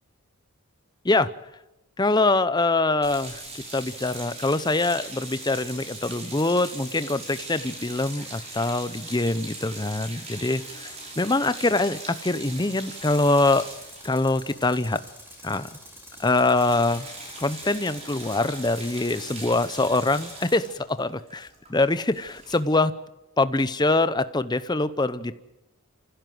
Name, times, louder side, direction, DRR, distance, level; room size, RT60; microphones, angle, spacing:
voice 1, 2.0-3.4 3.7-13.7 14.0-15.0 15.4-15.7 16.2-17.1 17.4-22.9 23.4-25.3, left 2 dB, 20° left, 13 dB, 0.8 m, -24 dB
sound 1, 3.0-15.4 15.7-15.9 16.1-22.6, right 2 dB, 30° right, 5.9 m, -40 dB
Tools, 13.0-20.7, equal, 10° right, 5.0 m, -47 dB
29.0 x 16.0 x 7.8 m, 0.94 s
head